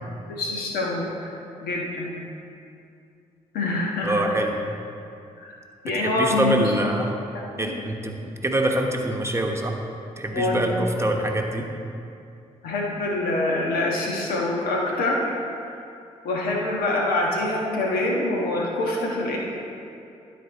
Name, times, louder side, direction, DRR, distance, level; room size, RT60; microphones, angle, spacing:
voice 1, 0.3-1.3 1.6-2.1 3.5-4.3 5.4-5.5 5.8-6.9 7.3-7.8 10.3-10.7 11.0-11.1 12.6-15.3 15.6-15.8 16.2-19.4, left 2 dB, 80° left, -2 dB, 1.3 m, -25 dB
voice 2, 4.0-4.6 6.0-7.1 7.6-9.8 10.2-11.7, right 1 dB, 20° right, 2 dB, 1.1 m, -25 dB
12.5 x 4.2 x 4.1 m, 2.6 s
supercardioid pair, 45°, 15 cm